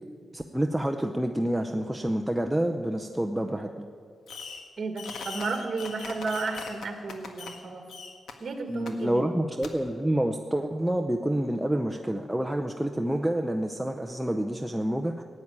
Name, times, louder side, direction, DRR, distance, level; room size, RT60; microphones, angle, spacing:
voice 1, 0.3-3.9 8.7-15.2, right 1 dB, 5° right, 3 dB, 0.6 m, -28 dB
Fireworks, 4.3-4.7 5.0-7.6 7.9-8.3 8.9-9.0 9.6-9.7, left 4 dB, 80° left, 1.6 m, -40 dB
voice 2, 4.8-7.8 8.4-9.2, right 3 dB, 45° right, 5 dB, 1.9 m, -33 dB
16.5 x 8.8 x 9.6 m, 2.3 s
wide cardioid pair, 135°, 0 cm